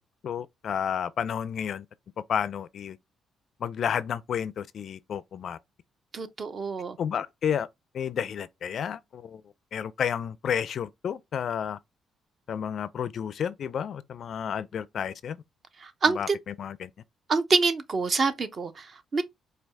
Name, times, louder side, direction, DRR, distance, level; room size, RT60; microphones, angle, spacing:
voice 1, 0.2-1.9 2.3-3.0 3.6-5.6 7.0-7.7 7.9-9.4 9.7-11.8 12.5-15.4 16.1-16.9, left 8 dB, 60° left, 0.4 m, -31 dB
voice 2, 6.1-7.0 15.8-16.4 17.3-19.2, right 4 dB, 45° right, 0.7 m, -26 dB
4.5 x 2.3 x 3.4 m
cardioid pair, 90°, 0 cm